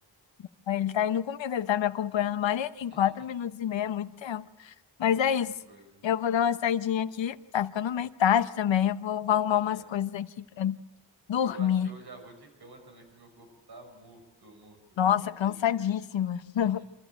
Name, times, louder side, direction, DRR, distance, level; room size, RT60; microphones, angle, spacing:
voice 1, 0.7-4.7 5.0-5.5 6.0-10.8 11.3-11.9 15.0-16.8, left 9 dB, 85° left, 13 dB, 1.0 m, -27 dB
voice 2, 5.0-6.0 9.6-9.9 11.3-15.5 16.6-16.7, right 2 dB, 60° right, 3 dB, 6.5 m, -51 dB
27.0 x 14.0 x 8.9 m, 1.0 s
wide cardioid pair, 120°, 44 cm